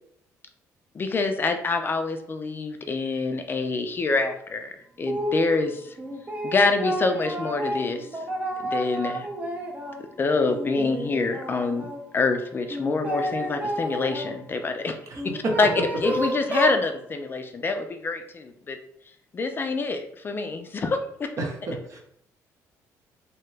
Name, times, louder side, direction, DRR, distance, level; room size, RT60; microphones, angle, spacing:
voice 1, 0.9-4.7 5.0-6.0 6.4-8.1 8.6-9.3 10.2-11.9 12.1-15.0 15.3-15.7 16.0-18.8 19.3-21.3, left 3 dB, 30° left, 6 dB, 0.3 m, -26 dB
sound 1, 5.1-5.5 6.0-10.0 10.4-12.0 12.7-14.3 15.1-16.8, equal, 25° right, 0.5 m, -30 dB
voice 2, 21.4-22.0, right 2 dB, 50° right, 1 dB, 0.8 m, -32 dB
2.8 x 2.2 x 3.1 m, 0.70 s
cardioid pair, 90°, 7 cm